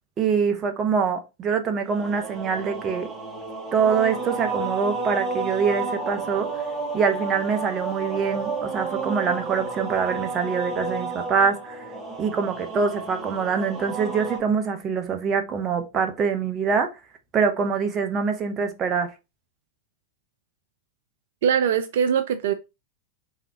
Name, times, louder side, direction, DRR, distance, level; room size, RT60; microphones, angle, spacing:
voice 1, 0.2-3.1 3.7-6.6 6.9-11.9 12.2-16.9 17.3-19.1, right 6 dB, 30° right, 1.1 m, -24 dB
sound 1, 1.8-14.4, right 3 dB, 10° right, 2.0 m, -31 dB
voice 2, 21.4-22.5, right 8 dB, 70° right, 0.4 m, -22 dB
3.6 x 3.2 x 3.7 m
hypercardioid pair, 95°, 0 cm